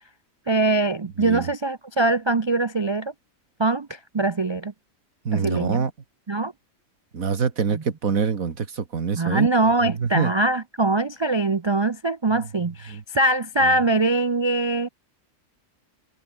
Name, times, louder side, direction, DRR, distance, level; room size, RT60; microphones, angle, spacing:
voice 1, 0.5-3.1 3.6-4.7 5.3-5.8 6.3-6.5 7.7-7.8 9.1-14.9, right 2 dB, 35° right, 0.4 m, -22 dB
voice 2, 1.2-1.5 5.3-5.9 7.1-10.3 12.3-12.4 12.9-13.0 13.6-13.7, right 5 dB, 85° right, 2.3 m, -25 dB
omnidirectional pair, 1.4 m